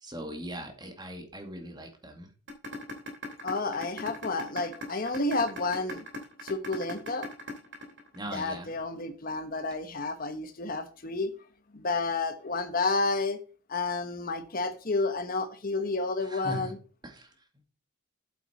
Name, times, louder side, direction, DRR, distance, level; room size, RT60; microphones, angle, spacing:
voice 1, 0.0-2.3 8.1-8.7 16.3-16.7 17.0-17.3, equal, 20° right, 2.1 m, -39 dB
sound 1, 2.5-8.5, left 1 dB, 60° right, 2.8 m, -38 dB
voice 2, 3.4-6.0 6.4-7.3 8.3-11.3 11.7-13.4 13.7-16.8, left 3 dB, 45° left, 1.0 m, -30 dB
8.6 x 8.3 x 4.3 m
head